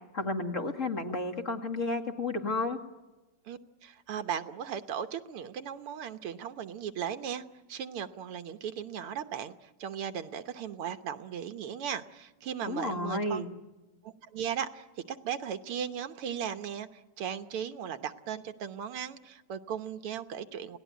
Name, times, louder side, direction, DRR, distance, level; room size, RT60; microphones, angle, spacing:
voice 1, 0.1-2.8 12.7-13.5, left 2 dB, 35° left, 4 dB, 2.3 m, -32 dB
voice 2, 3.5-13.5 14.0-20.8, right 8 dB, 80° right, 10 dB, 2.0 m, -37 dB
29.5 x 18.5 x 9.3 m, 1.1 s
omnidirectional pair, 2.4 m